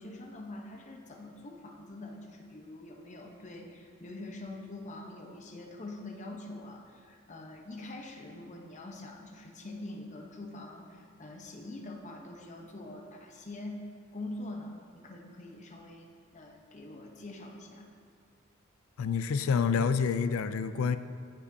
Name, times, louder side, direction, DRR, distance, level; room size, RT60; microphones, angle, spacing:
voice 1, 0.0-13.9 14.1-17.9, left 2 dB, 35° left, 1 dB, 0.8 m, -44 dB
voice 2, 19.0-21.0, left 6 dB, 80° left, 12 dB, 0.4 m, -28 dB
15.0 x 5.1 x 2.7 m, 2.2 s
head